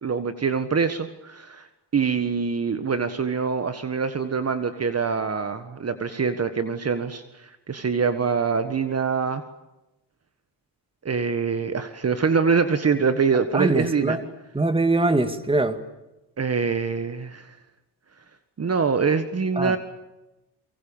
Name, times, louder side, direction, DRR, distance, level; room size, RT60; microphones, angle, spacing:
voice 1, 0.0-1.7 1.9-9.4 11.0-14.2 16.4-17.6 18.6-19.8, right 5 dB, 35° right, 1.6 m, -24 dB
voice 2, 13.5-14.2 14.5-15.8 19.6-19.7, right 2 dB, 15° right, 2.2 m, -22 dB
29.5 x 24.0 x 7.3 m
cardioid pair, 110°, 42 cm